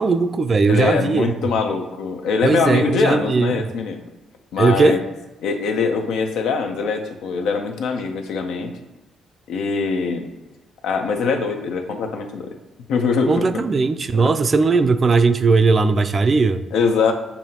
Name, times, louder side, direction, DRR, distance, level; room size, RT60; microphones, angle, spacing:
voice 1, 0.0-1.3 2.4-3.7 4.6-5.0 13.3-16.6, right 4 dB, 40° right, 10 dB, 0.3 m, -18 dB
voice 2, 0.7-4.0 4.5-5.0 5.4-8.7 9.5-10.3 10.8-12.5 12.9-13.5 14.1-14.3 16.7-17.1, left 5 dB, 85° left, 4 dB, 0.6 m, -22 dB
6.9 x 2.7 x 2.8 m, 1.1 s
cardioid pair, 90°, 0 cm